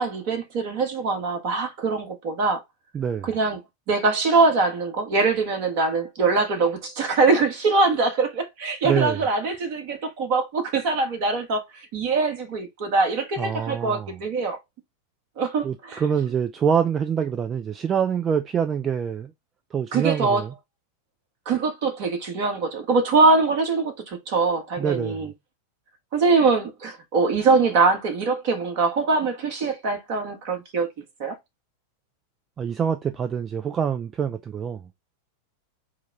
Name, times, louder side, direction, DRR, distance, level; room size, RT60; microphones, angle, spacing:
voice 1, 0.0-2.6 3.2-3.6 3.9-14.6 15.4-16.0 19.9-20.4 21.4-25.3 26.1-30.9 31.2-31.4, right 3 dB, 45° right, 1.4 m, -23 dB
voice 2, 2.9-3.3 8.8-9.2 13.4-14.1 15.6-19.3 19.7-20.5 24.8-25.2 32.6-34.9, right 7 dB, 25° right, 0.3 m, -25 dB
4.6 x 2.3 x 4.0 m
figure-of-eight pair, 90°, 0 cm